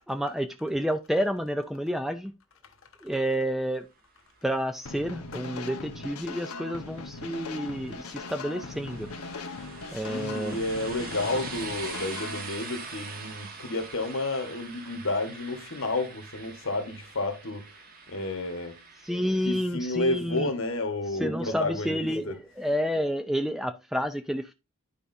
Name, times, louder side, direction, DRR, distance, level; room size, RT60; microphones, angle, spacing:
voice 1, 0.1-2.3 3.0-3.9 4.4-9.1 9.9-10.6 19.0-20.5 21.2-24.5, equal, ahead, 0.4 m, -29 dB
sound 1, 4.6-19.6, right 4 dB, 40° right, 1.3 m, -44 dB
sound 2, 4.9-12.4, left 3 dB, 90° left, 1.1 m, -39 dB
voice 2, 8.1-8.4 9.6-9.8 10.1-17.7 18.1-18.8 19.4-22.4, left 2 dB, 60° left, 1.3 m, -31 dB
11.5 x 4.9 x 2.6 m
head